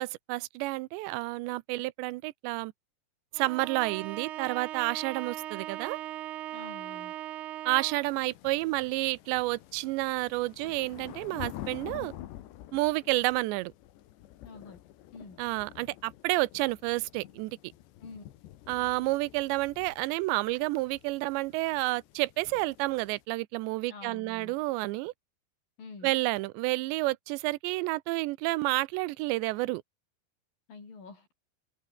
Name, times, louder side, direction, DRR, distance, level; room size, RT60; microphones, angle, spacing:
voice 1, 0.0-2.7 3.3-6.0 7.7-12.1 12.7-13.7 15.4-17.6 18.7-25.1 26.0-29.8, right 21 dB, 90° right, 3.0 m, -30 dB
Bowed string instrument, 3.4-8.2, right 13 dB, 70° right, 3.3 m, -39 dB
voice 2, 6.5-7.1 14.4-14.8 15.1-15.4 18.0-18.2 23.9-24.5 25.8-26.1 30.7-31.3, left 4 dB, 55° left, 8.0 m, -47 dB
sound 1, 8.0-23.2, left 13 dB, 80° left, 3.7 m, -49 dB
omnidirectional pair, 4.9 m